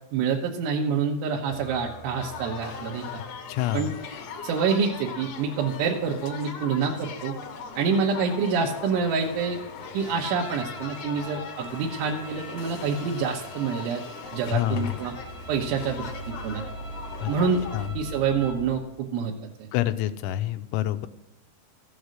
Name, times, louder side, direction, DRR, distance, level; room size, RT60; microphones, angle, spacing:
voice 1, 0.1-3.1 3.7-3.9 4.4-7.4 7.8-9.6 9.9-14.0 14.3-15.1 15.5-16.1 16.4-16.6 17.3-17.6 18.0-19.3 19.6-19.7, right 5 dB, 85° right, -1 dB, 3.6 m, -27 dB
sound 1, 1.5-18.7, right 1 dB, 45° left, 4.5 m, -44 dB
sound 2, 2.2-17.9, left 6 dB, 65° left, 3.1 m, -40 dB
voice 2, 3.5-3.9 14.5-14.9 17.2-17.3 17.7-17.9 19.7-21.1, left 14 dB, 85° left, 10 dB, 3.0 m, -27 dB
sound 3, 10.2-18.6, right 1 dB, 15° left, 3.5 m, -45 dB
15.0 x 7.9 x 6.4 m, 0.88 s
omnidirectional pair, 5.4 m